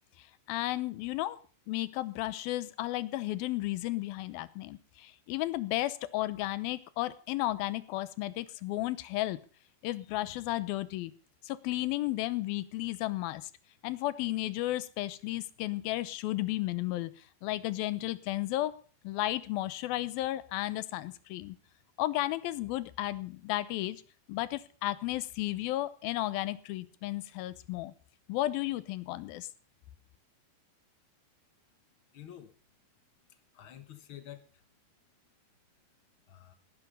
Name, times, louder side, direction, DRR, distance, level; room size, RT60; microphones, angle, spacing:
voice 1, 0.5-1.4 1.7-9.4 9.8-11.1 11.4-13.5 13.8-17.1 17.4-18.7 19.0-21.6 22.0-24.0 24.3-27.9 28.3-29.5, left 16 dB, 90° left, 16 dB, 2.7 m, -33 dB
voice 2, 32.1-32.5 33.3-34.6 36.3-36.5, left 11 dB, 55° left, 9 dB, 1.5 m, -49 dB
18.0 x 11.0 x 5.4 m, 0.40 s
omnidirectional pair, 4.1 m